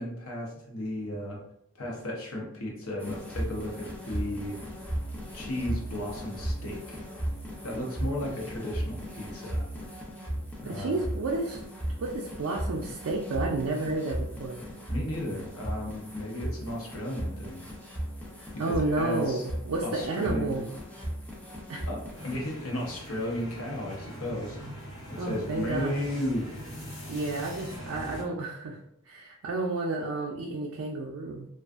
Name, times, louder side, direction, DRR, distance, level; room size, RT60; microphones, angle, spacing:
voice 1, 0.0-1.4 1.7-4.6 5.3-7.1 7.6-9.6 10.6-11.0 14.9-17.7 18.5-19.4 19.8-20.7 21.9-24.6 25.1-26.5, left 1 dB, 85° left, -1 dB, 0.8 m, -34 dB
sound 1, 3.0-22.4, right 1 dB, 5° left, 0.4 m, -36 dB
voice 2, 10.7-11.6 12.0-14.6 18.6-20.7 21.7-21.9 25.2-26.0 27.1-28.8 29.1-31.5, right 2 dB, 75° right, -1 dB, 0.4 m, -31 dB
sound 2, 22.1-28.2, equal, 60° left, 0.9 m, -42 dB
2.5 x 2.3 x 2.3 m, 0.71 s
head